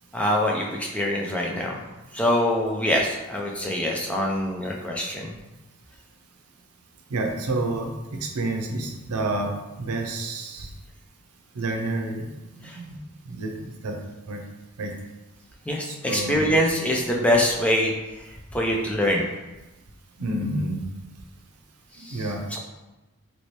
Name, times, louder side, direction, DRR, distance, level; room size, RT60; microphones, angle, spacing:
voice 1, 0.1-1.8 2.1-5.3 12.6-12.8 15.7-17.9 18.5-19.3 22.0-22.2 22.5-22.6, left 1 dB, 5° left, -2 dB, 0.3 m, -24 dB
voice 2, 7.1-10.7 11.5-12.3 12.5-13.0 13.2-14.0 14.3-14.4 14.8-14.9 15.9-16.4 20.2-20.8 22.0-22.4, right 2 dB, 80° right, 2 dB, 0.5 m, -29 dB
3.0 x 2.8 x 3.1 m, 1.1 s
head